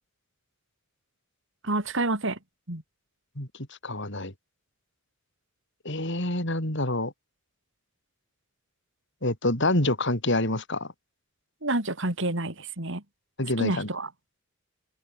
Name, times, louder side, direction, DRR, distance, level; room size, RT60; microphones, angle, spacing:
voice 1, 1.6-2.4 2.7-2.8 11.6-13.0 13.6-14.1, right 2 dB, 65° right, 4.6 m, -28 dB
voice 2, 3.8-4.3 5.9-7.1 9.2-10.9 13.4-13.9, left 1 dB, 60° left, 7.0 m, -27 dB
open air
head